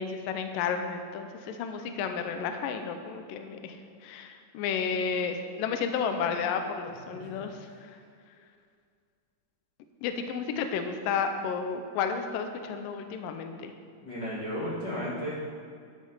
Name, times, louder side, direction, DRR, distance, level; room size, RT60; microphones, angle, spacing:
voice 1, 0.0-3.8 4.0-7.5 10.0-13.7, left 6 dB, 90° left, 7 dB, 2.0 m, -32 dB
voice 2, 14.0-15.4, equal, 55° left, -7 dB, 1.2 m, -34 dB
11.0 x 6.4 x 5.5 m, 2.2 s
omnidirectional pair, 4.7 m